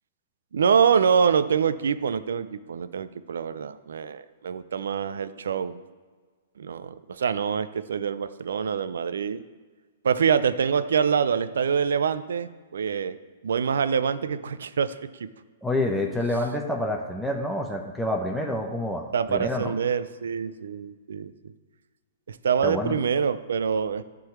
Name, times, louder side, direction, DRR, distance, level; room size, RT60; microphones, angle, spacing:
voice 1, 0.5-5.8 6.6-9.4 10.0-13.2 13.4-15.3 19.1-21.5 22.3-24.0, right 7 dB, 75° right, 13 dB, 0.5 m, -25 dB
voice 2, 15.6-19.7 22.6-23.0, left 1 dB, ahead, -1 dB, 0.8 m, -28 dB
11.5 x 3.9 x 7.2 m, 1.5 s
hypercardioid pair, 125°, 0 cm